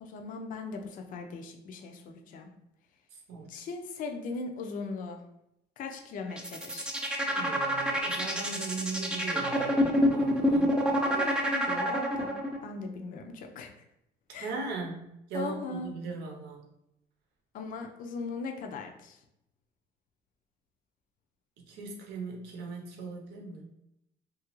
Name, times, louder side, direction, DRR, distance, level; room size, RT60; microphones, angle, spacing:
voice 1, 0.0-2.5 3.5-5.2 5.8-6.9 11.1-12.3 12.6-13.7 14.3-14.5 15.3-15.9 17.5-19.2, left 4 dB, 55° left, 4 dB, 0.4 m, -39 dB
voice 2, 3.3-3.6 7.3-10.8 14.4-16.6 21.7-23.7, right 4 dB, 85° right, 1 dB, 0.8 m, -39 dB
sound 1, 6.3-12.6, equal, 5° right, 0.4 m, -27 dB
2.8 x 2.4 x 3.0 m, 0.82 s
cardioid pair, 110°, 17 cm